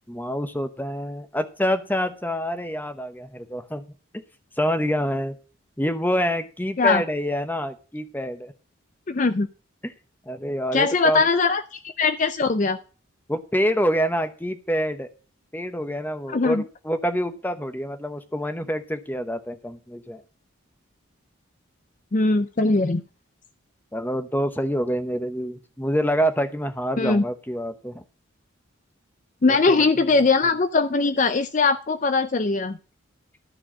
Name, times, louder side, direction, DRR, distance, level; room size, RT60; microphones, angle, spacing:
voice 1, 0.1-3.8 4.6-5.3 5.8-8.5 9.8-9.9 10.3-11.2 13.3-15.1 15.5-20.2 23.9-28.0 29.5-29.8 30.2-30.3, equal, 10° left, 9 dB, 0.9 m, -26 dB
voice 2, 9.1-9.5 10.7-12.8 16.3-16.6 22.1-23.0 27.0-27.2 29.4-32.8, left 3 dB, 35° left, 10 dB, 0.5 m, -21 dB
13.0 x 4.6 x 7.3 m, 0.37 s
head